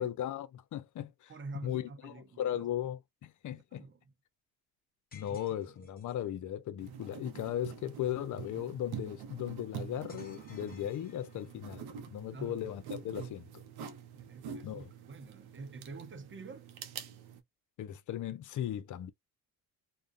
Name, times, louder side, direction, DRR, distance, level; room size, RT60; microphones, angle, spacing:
voice 1, 0.0-1.3 1.6-3.8 5.1-13.6 14.6-14.9 17.8-19.1, left 11 dB, 45° left, 0.6 m, -37 dB
voice 2, 1.3-2.7 3.5-4.1 5.2-5.4 12.3-12.7 14.1-16.7, right 3 dB, 30° right, 0.8 m, -47 dB
sound 1, 5.1-6.3 10.1-11.7, left 3 dB, 20° left, 1.0 m, -58 dB
sound 2, 6.8-17.4, right 8 dB, 65° right, 0.8 m, -46 dB
2.4 x 2.1 x 2.5 m
hypercardioid pair, 60°, 41 cm